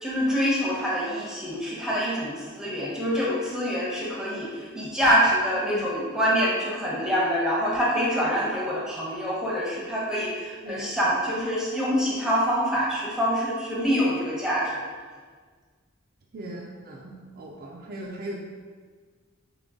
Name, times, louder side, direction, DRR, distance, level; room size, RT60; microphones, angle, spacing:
voice 1, 0.0-14.8, equal, 5° right, -6 dB, 0.9 m, -25 dB
voice 2, 5.5-5.9 10.6-11.1 16.3-18.4, right 1 dB, 45° right, -2 dB, 0.4 m, -39 dB
3.8 x 3.4 x 3.6 m, 1.5 s
head